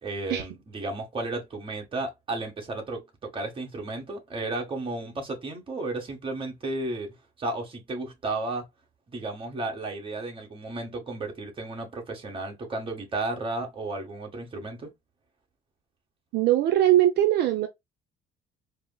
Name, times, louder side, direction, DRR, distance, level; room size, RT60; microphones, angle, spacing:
voice 1, 0.0-7.1 7.4-8.6 9.1-14.9, right 2 dB, 30° right, 1.4 m, -33 dB
voice 2, 16.3-17.7, right 13 dB, 75° right, 0.6 m, -21 dB
4.6 x 2.0 x 2.2 m
cardioid pair, 110°, 17 cm